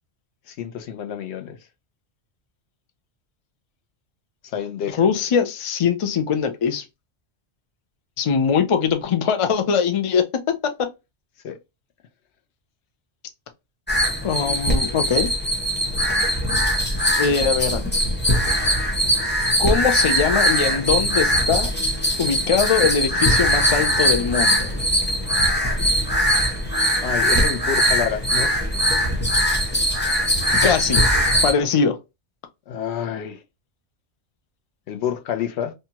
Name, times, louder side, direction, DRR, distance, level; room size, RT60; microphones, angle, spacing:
voice 1, 0.5-1.6 4.4-5.0 11.4-11.6 27.0-28.5 32.7-33.4 34.9-35.7, left 8 dB, 75° left, 0.9 m, -28 dB
voice 2, 5.0-6.8 8.2-10.9 14.2-15.3 17.2-17.8 19.6-21.7 22.2-24.7 30.6-31.0 31.4-32.0, left 6 dB, 55° left, 0.3 m, -21 dB
sound 1, 13.9-31.5, equal, 10° left, 0.6 m, -21 dB
2.7 x 2.3 x 2.8 m
omnidirectional pair, 1.2 m